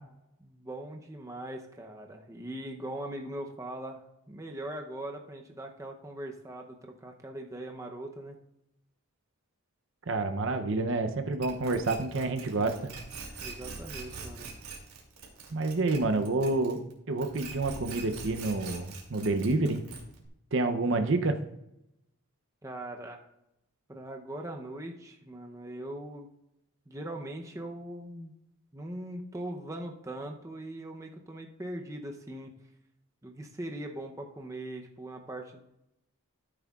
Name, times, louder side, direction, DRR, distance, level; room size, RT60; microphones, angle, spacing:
voice 1, 0.4-8.4 13.4-14.5 22.6-23.3 23.9-26.3 26.9-28.3 28.7-32.5 33.2-35.6, right 1 dB, 15° right, 2 dB, 0.7 m, -40 dB
voice 2, 10.1-12.9 15.5-16.8 17.1-19.8 20.5-21.4, right 2 dB, 55° right, 7 dB, 0.7 m, -28 dB
sound 1, 11.4-16.9 17.2-20.3, right 4 dB, 85° right, 2.5 m, -43 dB
13.5 x 8.2 x 2.4 m, 0.84 s
head